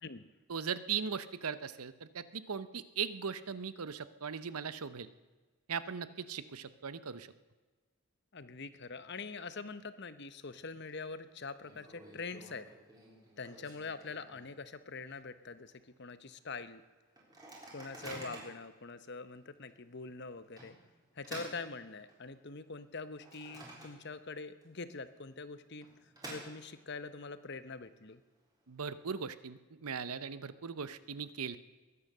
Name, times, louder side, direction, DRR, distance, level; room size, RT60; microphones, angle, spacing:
voice 1, 0.5-5.1 5.7-7.3 28.7-31.6, right 6 dB, 80° right, 15 dB, 0.8 m, -39 dB
voice 2, 8.3-12.7 13.4-16.8 17.7-20.7 21.1-28.2, left 4 dB, 50° left, 13 dB, 0.9 m, -44 dB
Microwave oven, 10.4-10.9 11.2-11.3 11.6-14.7 15.1-15.2 15.5-15.8 16.3-16.4 17.2-18.7 19.3-19.4 20.6-22.4 22.8-24.3 24.6-24.7 25.6-27.0, right 2 dB, 15° right, 3.8 m, -50 dB
21.5 x 9.7 x 6.7 m, 1.3 s
head